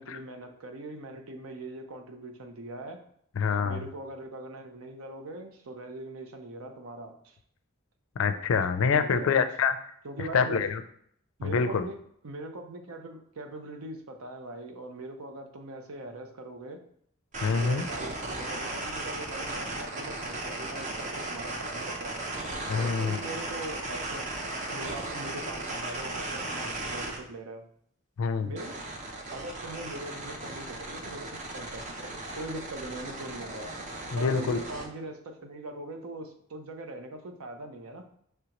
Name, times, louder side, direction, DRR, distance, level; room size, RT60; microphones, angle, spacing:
voice 1, 0.0-3.0 3.5-7.4 9.0-9.3 10.0-10.6 11.4-12.0 12.2-16.8 17.6-22.2 22.8-24.3 24.7-27.6 28.4-28.9 29.3-33.7 34.0-38.0, right 1 dB, 85° right, 5 dB, 0.6 m, -41 dB
voice 2, 3.4-3.8 8.2-9.8 10.3-10.8 11.4-11.9 17.4-17.8 22.7-23.2 28.2-28.5 34.1-34.6, left 5 dB, 70° left, 10 dB, 0.4 m, -26 dB
sound 1, 17.3-27.2 28.6-34.9, right 2 dB, 35° right, 0.6 m, -36 dB
5.0 x 3.3 x 2.9 m, 0.66 s
head